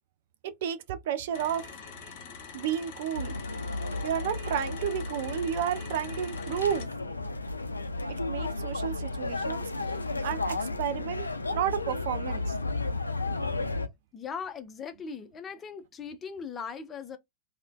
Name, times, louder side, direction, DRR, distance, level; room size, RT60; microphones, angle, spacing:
voice 1, 0.6-2.1 2.5-3.3 4.0-6.9 8.3-10.0 10.2-12.6, right 9 dB, 55° right, 0.4 m, -32 dB
sound 1, 1.3-6.9, left 6 dB, 50° left, 0.8 m, -45 dB
sound 2, 3.1-13.9, left 3 dB, 80° left, 0.3 m, -33 dB
voice 2, 14.1-17.2, left 6 dB, 20° left, 0.5 m, -39 dB
2.6 x 2.1 x 3.4 m
figure-of-eight pair, 90°, 0 cm